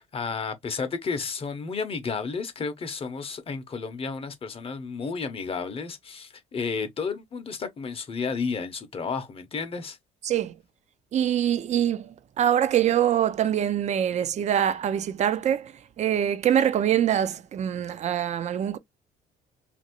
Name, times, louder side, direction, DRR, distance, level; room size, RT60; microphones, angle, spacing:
voice 1, 0.0-10.0, left 5 dB, 35° left, 0.7 m, -32 dB
voice 2, 11.1-18.8, right 10 dB, 45° right, 0.5 m, -24 dB
2.9 x 2.5 x 2.8 m
cardioid pair, 110°, 17 cm